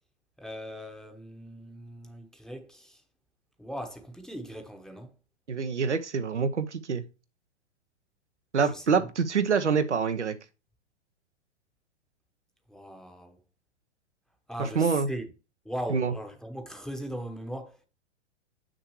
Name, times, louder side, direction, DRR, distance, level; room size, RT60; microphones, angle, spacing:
voice 1, 0.4-3.0 3.6-5.1 8.6-9.1 12.7-13.4 14.5-15.3 15.6-17.9, equal, ahead, 1.0 m, -39 dB
voice 2, 5.5-7.0 8.5-10.4 14.8-15.1 15.9-16.1, right 5 dB, 85° right, 0.9 m, -26 dB
7.6 x 6.5 x 3.0 m
figure-of-eight pair, 110°, 34 cm